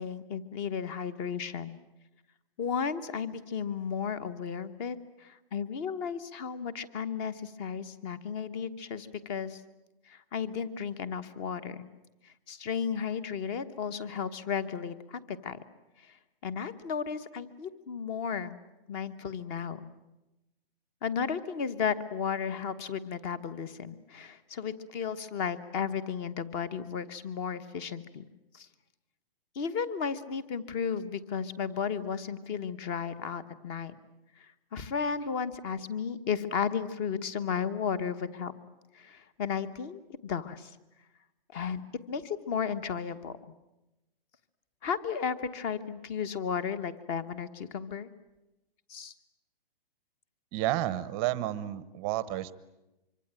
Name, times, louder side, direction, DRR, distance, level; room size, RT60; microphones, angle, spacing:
voice 1, 0.0-1.8 2.6-9.6 10.1-11.9 12.2-15.6 16.0-16.2 16.4-18.6 18.9-19.9 21.0-28.2 28.5-28.7 29.5-33.9 34.4-38.5 38.9-40.8 41.5-41.8 42.1-43.4 44.8-48.1 48.9-49.1, left 6 dB, 25° left, 15 dB, 1.3 m, -34 dB
voice 2, 50.5-52.5, right 15 dB, 20° right, 16 dB, 0.9 m, -31 dB
25.0 x 25.0 x 9.0 m, 0.96 s
hypercardioid pair, 160°, 30 cm